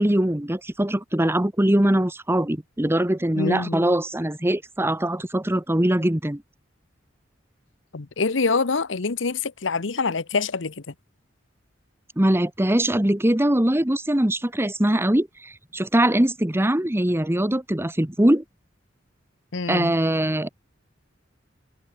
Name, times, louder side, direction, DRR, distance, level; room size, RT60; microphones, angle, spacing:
voice 1, 0.0-6.4 12.2-18.4 19.7-20.5, right 1 dB, 15° right, 1.2 m, -22 dB
voice 2, 3.4-3.8 7.9-10.9 19.5-19.9, left 4 dB, 75° left, 1.0 m, -25 dB
head